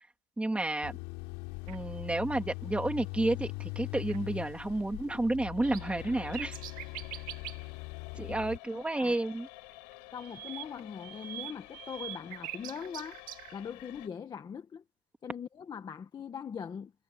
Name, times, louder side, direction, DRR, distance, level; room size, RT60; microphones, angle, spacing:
voice 1, 0.4-1.0 1.7-6.6 8.2-9.5, right 2 dB, 5° right, 2.1 m, -31 dB
sound 1, 0.8-8.6, left 26 dB, 65° left, 4.2 m, -41 dB
sound 2, 1.7-1.8 4.1-4.2 5.4-7.7 9.1-9.2 9.5-13.5, right 14 dB, 40° right, 1.9 m, -44 dB
sound 3, 5.6-14.1, left 27 dB, 85° left, 5.7 m, -51 dB
voice 2, 10.1-13.2 13.5-14.8 15.2-16.9, left 7 dB, 20° left, 1.1 m, -41 dB
cardioid pair, 170°, 21 cm